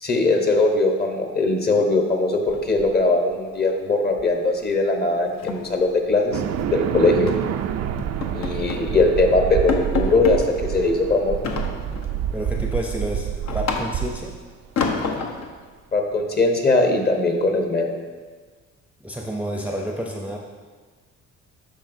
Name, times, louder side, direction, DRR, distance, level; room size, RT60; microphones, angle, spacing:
voice 1, 0.0-6.4 6.7-7.3 8.3-11.4 15.9-17.9, left 2 dB, 35° left, 3 dB, 1.0 m, -20 dB
sound 1, 2.5-3.3 3.6-3.9 4.2-4.4 4.7-4.8 5.2-6.7 7.3-7.5 8.0-8.9 9.3-9.4 9.7-10.4 11.4-12.2 12.6-14.2 14.8-15.5, left 4 dB, 65° left, 0.9 m, -29 dB
sound 2, 6.3-14.8, right 9 dB, 60° right, 0.4 m, -27 dB
voice 2, 12.3-14.3 19.0-20.4, equal, 5° right, -1 dB, 0.6 m, -29 dB
12.0 x 4.2 x 2.7 m, 1.4 s
cardioid pair, 90°, 30 cm